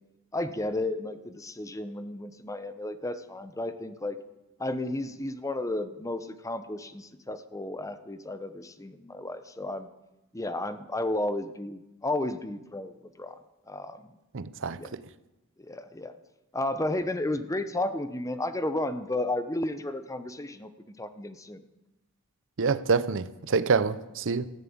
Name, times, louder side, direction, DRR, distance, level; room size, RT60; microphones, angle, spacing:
voice 1, 0.3-4.2 4.6-9.9 10.3-13.4 13.7-14.0 14.8-14.9 15.6-16.1 16.5-20.7 21.0-21.6, left 1 dB, 15° left, 0.8 m, -33 dB
voice 2, 14.3-15.0 22.6-24.5, right 5 dB, 60° right, 0.6 m, -27 dB
14.5 x 11.0 x 8.7 m
head